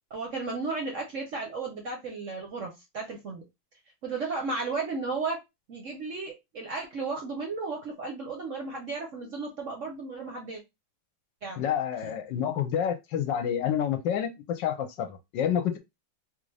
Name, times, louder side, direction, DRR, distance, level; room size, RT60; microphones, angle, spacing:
voice 1, 0.1-3.4 4.0-5.4 5.7-10.6 11.4-11.7, right 3 dB, 55° right, 0.9 m, -34 dB
voice 2, 11.6-15.8, left 9 dB, 75° left, 1.2 m, -28 dB
3.8 x 2.5 x 3.2 m
omnidirectional pair, 2.1 m